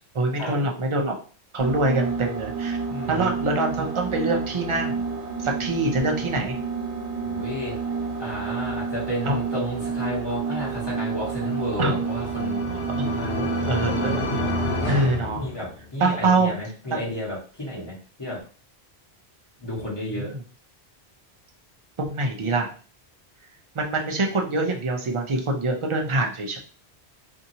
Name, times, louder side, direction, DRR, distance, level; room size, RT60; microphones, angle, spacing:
voice 1, 0.1-1.2 1.5-2.8 3.1-5.0 5.4-6.5 9.2-9.4 11.8-11.9 12.7-13.1 13.4-14.6 14.9-15.5 16.0-16.5 16.9-17.0 17.7-17.8 20.1-20.4 22.0-22.7 23.7-26.6, right 2 dB, 45° right, 1 dB, 0.4 m, -25 dB
sound 1, 1.6-15.1, right 5 dB, 85° right, 1.0 m, -30 dB
voice 2, 2.9-3.3 6.3-6.4 7.2-7.8 8.2-12.6 13.0-13.6 15.3-18.4 19.6-20.3, left 1 dB, 25° left, -6 dB, 1.2 m, -32 dB
sound 2, 11.6-16.1, left 3 dB, 75° left, 1.0 m, -30 dB
2.7 x 2.6 x 2.7 m, 0.40 s
omnidirectional pair, 1.1 m